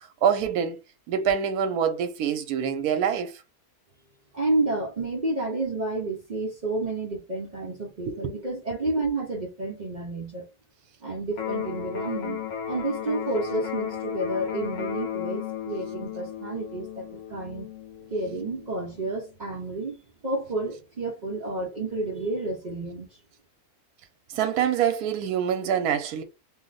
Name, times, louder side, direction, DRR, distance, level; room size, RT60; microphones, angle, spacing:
voice 1, 0.2-0.8 1.1-3.3 8.1-8.3 24.3-26.2, right 8 dB, 85° right, 1.1 m, -25 dB
voice 2, 4.3-10.5 11.0-12.4 12.7-17.7 18.1-20.0 20.2-23.1, right 2 dB, 55° right, 0.5 m, -30 dB
Electric guitar, 11.3-19.3, left 9 dB, 50° left, 0.9 m, -34 dB
2.7 x 2.0 x 3.8 m
omnidirectional pair, 1.6 m